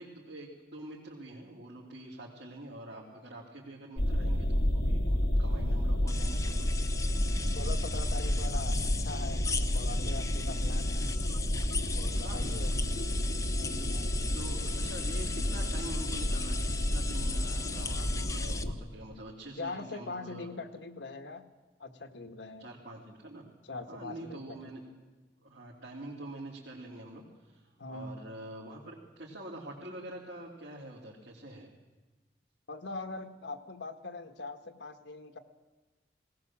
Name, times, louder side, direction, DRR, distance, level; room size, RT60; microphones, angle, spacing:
voice 1, 0.0-6.7 12.1-13.2 14.3-20.5 22.6-23.5 23.9-24.8 25.4-31.7, right 1 dB, 90° right, -4 dB, 3.1 m, -46 dB
sound 1, 4.0-18.7, equal, 70° left, 2.2 m, -30 dB
sound 2, 6.1-18.6, left 5 dB, 15° left, 0.7 m, -39 dB
voice 2, 7.5-11.2 11.9-12.7 13.6-14.2 19.6-21.5 21.8-22.7 23.7-24.6 27.8-28.1 32.7-35.4, left 3 dB, 85° left, 7 dB, 1.5 m, -42 dB
19.0 x 18.5 x 7.4 m, 1.2 s
head